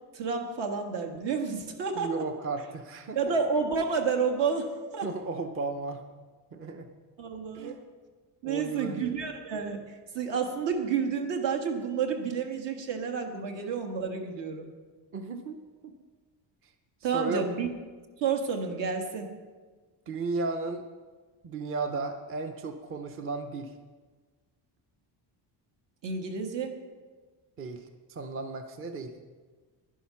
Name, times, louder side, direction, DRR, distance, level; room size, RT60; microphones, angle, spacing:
voice 1, 0.1-2.1 3.2-5.1 7.2-7.8 8.4-14.7 17.0-17.7 18.2-19.3 26.0-26.8, right 5 dB, 65° right, 4 dB, 1.7 m, -30 dB
voice 2, 1.9-3.2 5.0-6.0 6.5-6.9 7.5-7.8 8.4-9.2 15.1-16.0 16.6-16.7 17.1-17.5 20.1-20.8 21.4-23.8 27.6-29.1, right 3 dB, 30° right, 7 dB, 0.6 m, -34 dB
11.0 x 11.0 x 5.8 m, 1.4 s
cardioid pair, 180°, 46 cm